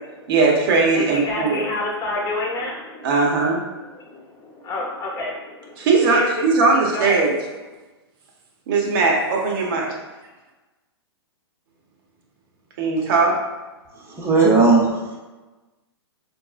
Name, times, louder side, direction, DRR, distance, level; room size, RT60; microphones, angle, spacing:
voice 1, 0.3-1.6 3.0-3.6 5.8-7.4 8.7-10.0 12.8-13.4, right 4 dB, 50° right, -1 dB, 0.9 m, -19 dB
voice 2, 0.9-2.7 4.7-5.3 6.1-6.3 6.9-7.2, left 2 dB, 25° left, -2 dB, 0.8 m, -27 dB
voice 3, 14.1-15.2, right 3 dB, 20° right, -2 dB, 0.8 m, -17 dB
4.5 x 2.6 x 2.4 m, 1.2 s
hypercardioid pair, 120°, 14 cm